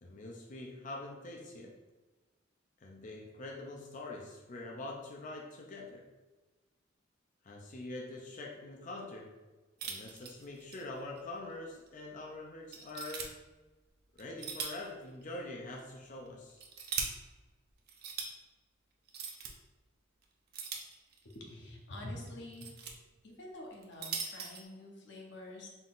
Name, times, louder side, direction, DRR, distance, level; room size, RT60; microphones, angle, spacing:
voice 1, 0.0-1.8 2.8-6.0 7.4-9.3 9.8-13.4 14.2-16.6, left 2 dB, 40° left, -1 dB, 0.5 m, -44 dB
sound 1, 9.8-10.8 11.2-11.3 11.9-12.0 12.7-13.3 14.2-14.9 15.2-15.3 16.3-17.1 17.9-18.3 19.1-19.5 20.5-21.3 22.3-22.9 23.7-24.6, right 6 dB, 55° right, 0.5 m, -40 dB
voice 2, 21.3-22.8 23.2-25.7, left 1 dB, 65° left, -1 dB, 0.8 m, -46 dB
3.8 x 3.8 x 2.5 m, 1.2 s
head